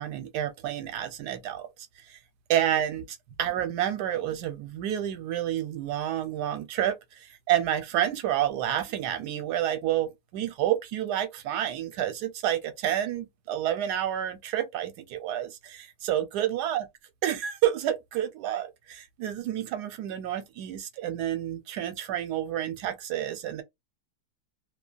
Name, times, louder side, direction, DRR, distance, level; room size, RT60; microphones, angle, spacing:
voice 1, 0.0-1.7 2.1-2.2 2.5-16.9 17.2-23.6, right 11 dB, 80° right, 1.1 m, -29 dB
2.8 x 2.2 x 2.4 m
omnidirectional pair, 1.8 m